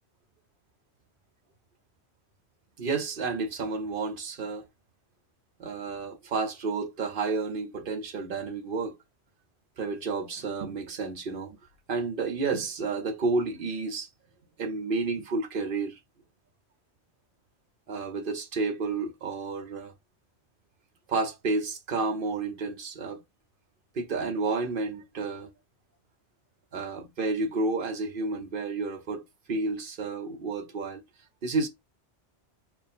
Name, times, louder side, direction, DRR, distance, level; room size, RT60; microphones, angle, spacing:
voice 1, 2.8-4.7 5.6-9.0 9.8-11.6 11.9-14.1 14.6-16.0 17.9-19.9 21.1-23.2 23.9-25.5 26.7-29.2 29.5-31.0 31.4-31.7, right 3 dB, 55° right, 0.7 m, -31 dB
4.4 x 2.2 x 3.5 m
omnidirectional pair, 1.2 m